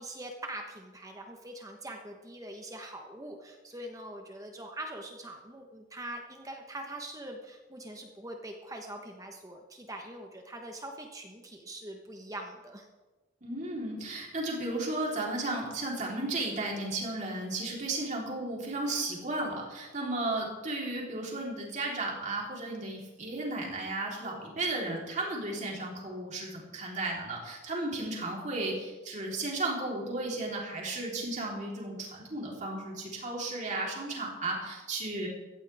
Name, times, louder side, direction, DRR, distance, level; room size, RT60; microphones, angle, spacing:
voice 1, 0.0-12.9, right 1 dB, 20° right, 3 dB, 1.1 m, -43 dB
voice 2, 13.4-35.3, right 2 dB, 40° right, -2 dB, 3.7 m, -34 dB
16.5 x 14.0 x 3.5 m, 1.2 s
head